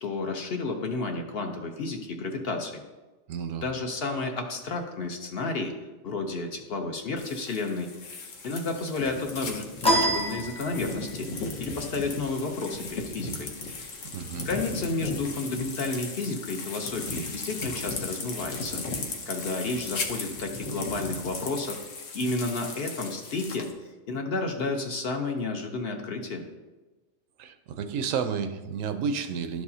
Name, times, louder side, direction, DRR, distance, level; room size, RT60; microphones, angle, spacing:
voice 1, 0.0-2.8 3.6-5.7 6.0-7.9 8.4-11.3 11.6-13.5 14.4-18.8 19.3-21.8 22.1-23.7 24.1-26.4, left 3 dB, 55° left, 3 dB, 0.8 m, -31 dB
voice 2, 3.3-3.6 14.1-14.5 27.4-29.6, right 6 dB, 80° right, 9 dB, 1.0 m, -31 dB
sound 1, 7.2-23.7, left 3 dB, 70° left, 1.2 m, -36 dB
sound 2, 9.8-11.2, equal, 10° left, 0.4 m, -26 dB
11.5 x 4.8 x 2.7 m, 1.2 s
omnidirectional pair, 1.4 m